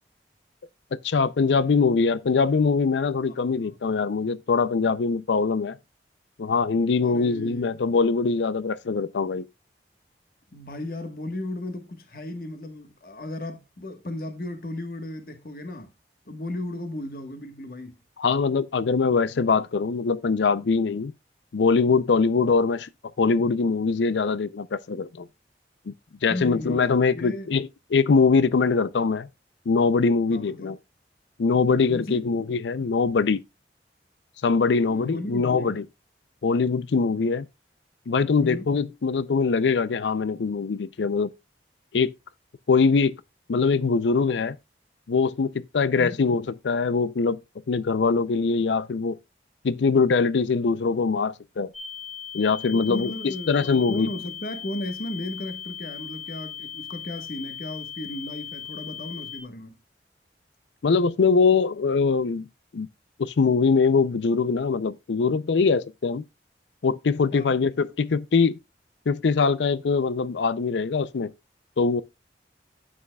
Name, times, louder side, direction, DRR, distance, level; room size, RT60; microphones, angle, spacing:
voice 1, 0.9-5.8 6.4-9.5 18.2-21.1 21.5-22.9 23.2-25.3 25.9-26.0 26.2-29.3 29.7-30.8 31.4-33.4 34.4-35.8 36.4-37.5 38.1-41.3 41.9-42.1 42.7-43.2 43.5-44.6 45.1-47.4 47.7-49.2 49.6-51.7 52.3-54.1 60.8-62.5 62.7-62.9 63.2-66.2 66.8-68.6 69.1-71.3 71.8-72.0, left 4 dB, 90° left, 0.5 m, -22 dB
voice 2, 3.2-3.7 7.0-7.7 10.5-15.9 16.3-18.0 26.3-26.8 27.1-27.5 30.3-30.8 31.9-32.2 34.8-35.8 38.4-38.7 46.0-46.2 52.7-59.8 67.3-67.5, left 1 dB, 55° left, 1.3 m, -35 dB
sound 1, 51.7-59.4, left 8 dB, 5° right, 2.0 m, -38 dB
11.0 x 8.9 x 2.3 m
head